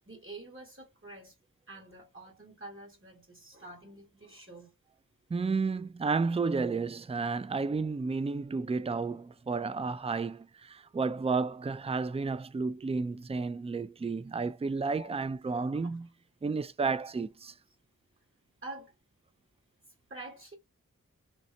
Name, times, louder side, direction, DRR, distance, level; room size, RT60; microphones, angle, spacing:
voice 1, 0.0-1.3 1.7-4.7 15.0-15.1 15.7-15.9 18.6-18.9 20.1-20.5, right 2 dB, 35° right, 1.4 m, -47 dB
voice 2, 5.3-16.1 16.4-17.5, right 4 dB, 20° right, 0.3 m, -32 dB
3.2 x 2.7 x 3.2 m
wide cardioid pair, 50°, 34 cm